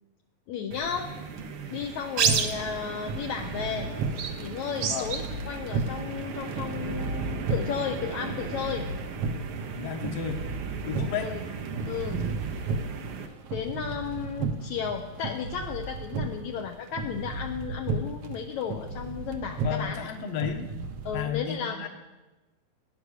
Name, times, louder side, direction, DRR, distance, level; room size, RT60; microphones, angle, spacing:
voice 1, 0.5-1.1 1.7-3.9 4.4-8.9 11.2-11.4 11.9-12.2 13.5-20.0 21.1-21.9, left 7 dB, 75° left, 3 dB, 1.8 m, -34 dB
sound 1, 0.7-13.3, right 6 dB, 85° right, 1.2 m, -34 dB
sound 2, 2.2-21.2, right 4 dB, 65° right, 1.5 m, -35 dB
voice 2, 9.8-10.4 10.9-11.3 19.6-20.8 21.1-21.9, left 8 dB, 55° left, 5 dB, 1.9 m, -32 dB
18.5 x 9.9 x 6.5 m, 1.2 s
omnidirectional pair, 4.1 m